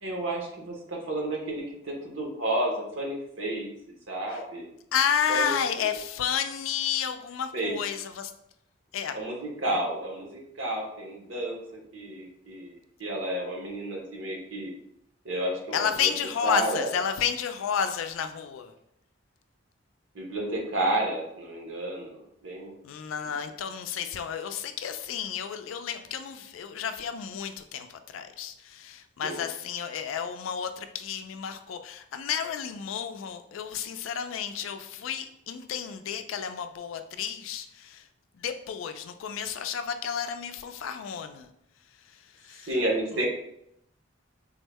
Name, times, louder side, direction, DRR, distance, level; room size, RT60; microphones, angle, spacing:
voice 1, 0.0-3.7 4.1-4.6 5.3-5.5 5.8-5.9 7.5-7.7 9.1-11.6 11.9-14.7 15.2-16.1 16.4-16.9 20.1-22.8 29.2-29.4 42.7-43.3, right 1 dB, 70° right, 0 dB, 0.9 m, -31 dB
voice 2, 4.9-8.3 8.9-9.2 15.7-18.7 22.8-38.1 38.4-41.5 42.0-42.7 43.2-43.3, left 8 dB, 85° left, 9 dB, 0.3 m, -31 dB
3.5 x 2.1 x 3.4 m, 0.77 s
head